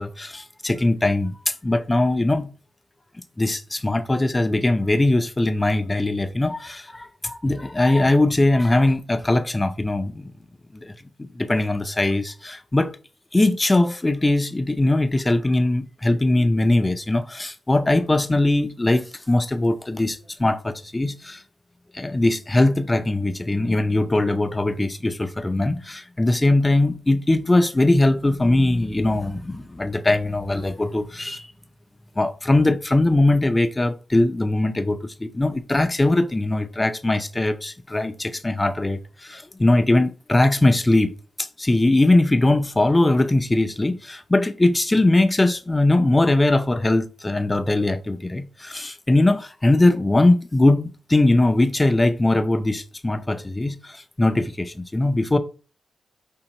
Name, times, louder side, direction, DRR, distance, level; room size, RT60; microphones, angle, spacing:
voice 1, 0.0-2.5 3.4-10.3 10.7-10.9 11.2-12.9 13.3-21.4 21.9-31.5 32.2-55.4, left 2 dB, 15° left, 0.4 m, -21 dB
5.3 x 3.4 x 2.9 m
wide cardioid pair, 130°, 0 cm